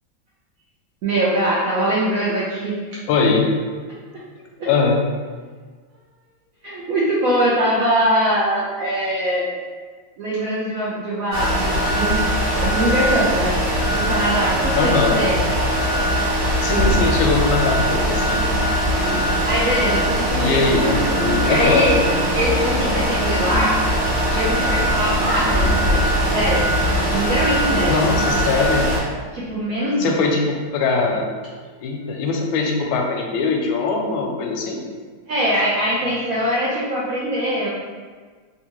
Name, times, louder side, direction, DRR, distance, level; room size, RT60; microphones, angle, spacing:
voice 1, 1.0-2.8 4.6-4.7 6.6-9.5 10.2-12.2 12.6-13.6 13.9-15.4 19.4-21.1 21.4-22.0 22.3-23.8 24.3-26.6 27.1-28.0 28.3-28.5 29.3-30.2 35.3-37.7, right 1 dB, 75° right, -8 dB, 0.7 m, -22 dB
voice 2, 3.1-3.5 4.7-5.0 14.7-15.2 16.6-18.5 20.4-21.0 21.5-21.9 27.9-28.9 30.0-31.3 31.8-34.8, left 4 dB, 90° left, 1 dB, 1.4 m, -21 dB
sound 1, 11.3-29.0, equal, 55° right, 1.5 m, -21 dB
sound 2, 16.5-27.9, equal, 10° left, 0.7 m, -28 dB
3.5 x 2.7 x 2.9 m, 1.5 s
omnidirectional pair, 2.1 m